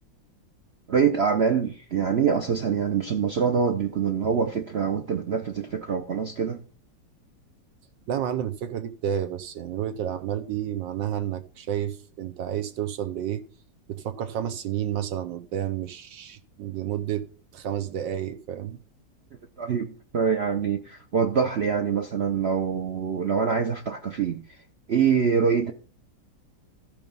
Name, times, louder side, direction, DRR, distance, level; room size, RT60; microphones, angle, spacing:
voice 1, 0.9-6.6 19.6-24.4 24.9-25.7, right 6 dB, 60° right, 0.6 m, -25 dB
voice 2, 8.1-13.4 13.9-17.3 17.5-18.8, right 10 dB, 80° right, 1.4 m, -30 dB
14.0 x 5.1 x 5.3 m
omnidirectional pair, 2.0 m